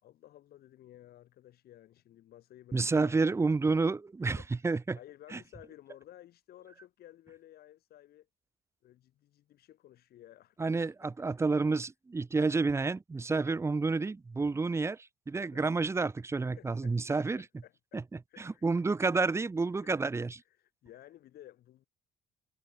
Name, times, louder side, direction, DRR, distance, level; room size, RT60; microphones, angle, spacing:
voice 1, 0.0-3.1 4.2-4.5 4.9-8.3 8.8-10.9 11.2-11.4 13.3-13.5 15.5-15.6 16.3-18.0 18.3-18.8 19.7-19.9 20.5-21.9, left 13 dB, 65° left, 3.7 m, -55 dB
voice 2, 2.7-5.0 5.3-5.4 10.6-17.4 17.9-20.4, right 3 dB, 15° right, 0.7 m, -30 dB
cardioid pair, 110°, 17 cm